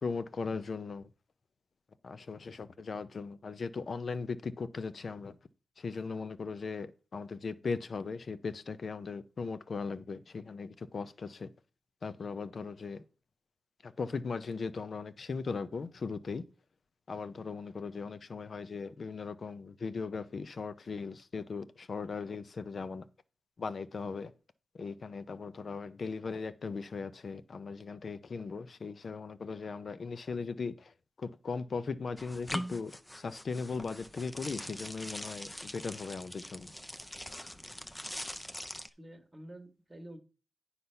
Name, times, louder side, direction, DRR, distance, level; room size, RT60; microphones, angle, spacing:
voice 1, 0.0-1.1 2.0-5.4 5.8-11.5 12.0-13.0 13.8-16.4 17.1-23.1 23.6-24.3 24.7-36.7, left 4 dB, 55° left, 0.6 m, -38 dB
sound 1, 32.2-38.9, equal, 10° left, 0.6 m, -42 dB
voice 2, 37.5-37.9 39.0-40.2, right 1 dB, 20° right, 1.4 m, -50 dB
9.5 x 4.1 x 5.7 m
cardioid pair, 90°, 0 cm